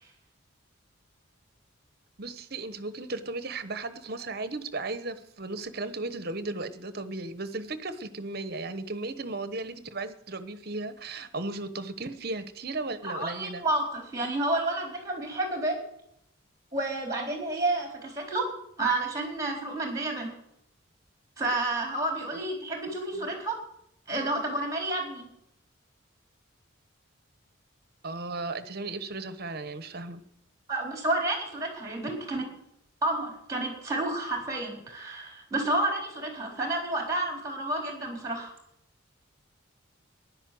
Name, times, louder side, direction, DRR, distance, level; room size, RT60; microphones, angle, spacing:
voice 1, 2.2-13.6 23.1-23.4 28.0-30.2, right 2 dB, 50° right, 1.0 m, -35 dB
voice 2, 13.0-15.8 16.7-18.5 18.8-20.3 21.4-23.5 24.1-25.3 30.7-32.5 33.0-38.5, right 2 dB, 15° right, 4.2 m, -30 dB
15.0 x 11.0 x 7.7 m
head